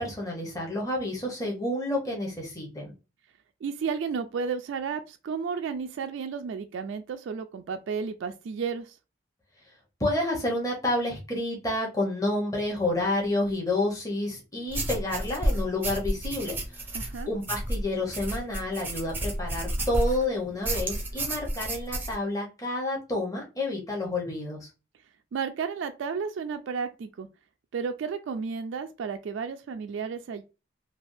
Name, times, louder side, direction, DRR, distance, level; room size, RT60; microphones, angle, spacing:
voice 1, 0.0-2.9 10.0-16.9 17.3-24.7, left 1 dB, 15° left, 0.9 m, -29 dB
voice 2, 3.6-9.0 16.9-17.3 25.3-27.3 27.7-30.4, right 5 dB, 70° right, 0.3 m, -32 dB
sound 1, 14.7-20.2 20.6-22.2, right 1 dB, 10° right, 0.5 m, -31 dB
3.3 x 2.3 x 2.6 m
head